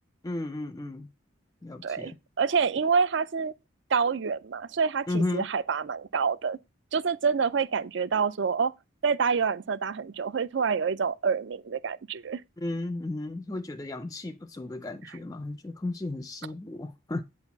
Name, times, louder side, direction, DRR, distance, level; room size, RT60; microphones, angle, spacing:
voice 1, 0.2-1.1 1.6-2.2 5.1-5.5 12.6-17.2, left 2 dB, 15° left, 0.4 m, -34 dB
voice 2, 1.8-3.5 3.9-6.6 6.9-8.7 9.0-12.4, right 5 dB, 60° right, 0.4 m, -27 dB
8.9 x 4.2 x 5.8 m
head